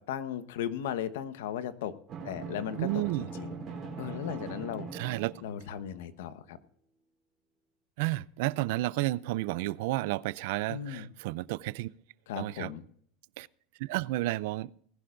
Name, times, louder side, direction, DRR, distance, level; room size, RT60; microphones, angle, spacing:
voice 1, 0.0-2.0 2.2-3.5 4.0-4.9 5.4-6.6 10.7-11.1 12.3-12.8, left 9 dB, 90° left, 1.1 m, -36 dB
Drum, 2.1-5.9, right 5 dB, 25° right, 4.3 m, -41 dB
voice 2, 2.8-3.3 4.9-5.3 8.0-11.9 12.4-12.7 13.4-13.5 13.9-14.7, right 18 dB, 60° right, 0.4 m, -31 dB
19.5 x 11.5 x 2.6 m
supercardioid pair, 170°, 0 cm